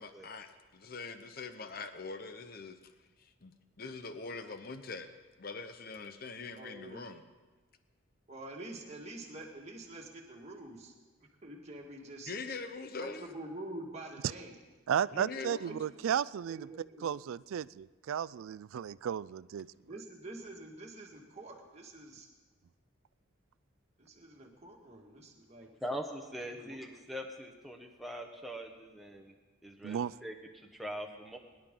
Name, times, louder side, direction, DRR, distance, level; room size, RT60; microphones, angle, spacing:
voice 1, 0.0-2.8 3.2-5.1 5.4-7.2 12.3-13.3 15.1-15.8, left 4 dB, 45° left, 9 dB, 0.8 m, -43 dB
voice 2, 6.6-7.0 8.3-10.9 11.4-12.3 13.0-14.5 15.6-15.8 16.5-17.1 19.8-22.3 24.0-25.7 26.5-26.8, right 1 dB, 30° right, 0 dB, 1.9 m, -46 dB
voice 3, 14.9-16.7 17.0-19.7 29.8-30.1, right 8 dB, 80° right, 19 dB, 0.3 m, -34 dB
voice 4, 25.8-29.3 29.6-31.4, equal, ahead, 1 dB, 1.2 m, -42 dB
22.5 x 11.0 x 3.8 m, 1.3 s
head